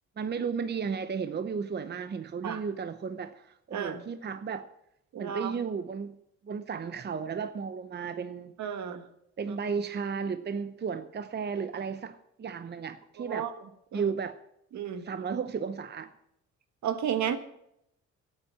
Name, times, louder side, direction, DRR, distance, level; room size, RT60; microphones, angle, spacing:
voice 1, 0.2-4.7 5.1-6.2 6.4-8.5 9.4-13.5 13.9-14.4 15.0-16.1, right 6 dB, 35° right, 0.8 m, -34 dB
voice 2, 3.7-4.0 5.1-5.5 8.6-9.0 9.5-9.6 13.2-13.5 13.9-14.1 14.7-15.1 16.8-17.4, right 9 dB, 70° right, 1.6 m, -32 dB
12.0 x 8.8 x 8.7 m
cardioid pair, 90°, 30 cm